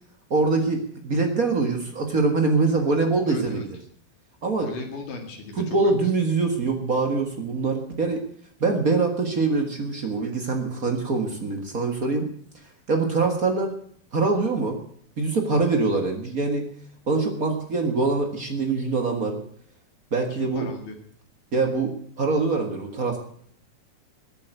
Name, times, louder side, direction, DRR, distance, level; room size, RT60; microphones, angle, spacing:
voice 1, 0.3-3.8 4.4-4.7 5.6-8.2 8.6-12.3 12.9-13.7 14.1-14.8 15.2-16.7 17.1-19.4 20.1-20.7 21.5-23.2, right 3 dB, 55° right, 4 dB, 0.9 m, -24 dB
voice 2, 3.3-3.6 4.6-5.9 20.3-21.0, left 3 dB, 60° left, 4 dB, 3.4 m, -37 dB
13.5 x 8.9 x 9.1 m, 0.62 s
omnidirectional pair, 4.4 m